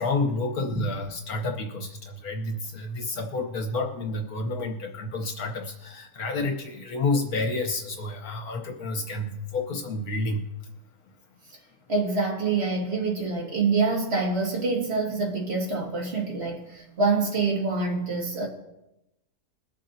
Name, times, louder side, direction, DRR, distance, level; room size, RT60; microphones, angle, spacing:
voice 1, 0.0-10.4, left 2 dB, 65° left, 1.5 m, -29 dB
voice 2, 11.9-18.5, right 4 dB, 40° right, 2.3 m, -26 dB
22.0 x 7.4 x 2.7 m
omnidirectional pair, 1.7 m